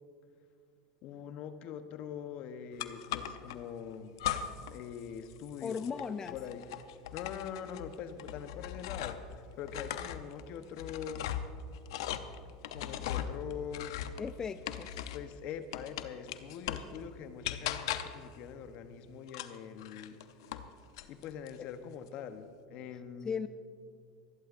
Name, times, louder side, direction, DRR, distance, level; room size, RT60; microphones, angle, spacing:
voice 1, 1.0-4.1 4.7-5.9 6.3-6.7 7.1-11.4 12.7-14.0 15.1-20.2 21.1-23.3, left 8 dB, 55° left, 10 dB, 0.9 m, -43 dB
sound 1, 2.8-3.6 4.2-4.8 5.0-9.3 9.6-15.3 15.7-17.0 17.4-18.3 19.3-20.7 21.0-21.6, left 11 dB, 80° left, 0.7 m, -39 dB
voice 2, 5.6-6.4 14.2-15.0 23.2-23.5, left 6 dB, 25° left, 11 dB, 0.4 m, -37 dB
26.5 x 11.5 x 2.5 m, 2.3 s
supercardioid pair, 100°, 2 cm